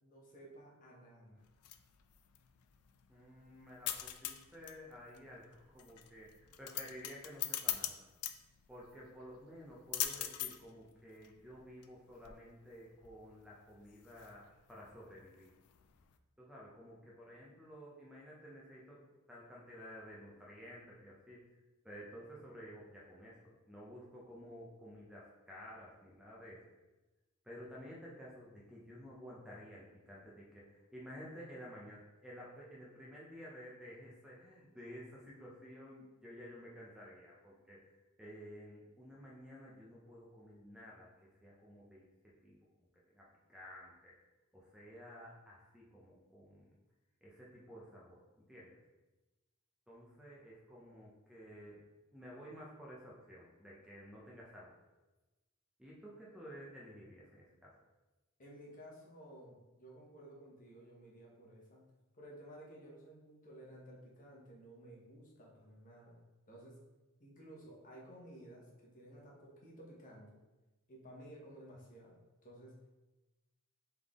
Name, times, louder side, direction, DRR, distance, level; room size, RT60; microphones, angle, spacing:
voice 1, 0.0-1.4 58.4-61.9 62.2-66.2 66.5-66.8 67.2-70.4 70.9-72.7, right 1 dB, 40° left, -3 dB, 1.0 m, -55 dB
sound 1, 1.4-16.2, left 12 dB, 90° left, 0.4 m, -44 dB
voice 2, 3.1-8.1 8.7-15.5 16.4-19.0 19.3-21.5 21.8-26.6 27.4-37.8 38.2-42.1 42.4-44.1 44.5-46.7 47.2-48.2 48.5-48.8 49.9-51.8 52.1-54.8 55.8-57.7, equal, 5° right, -5 dB, 0.6 m, -53 dB
3.9 x 3.5 x 3.6 m, 1.1 s
head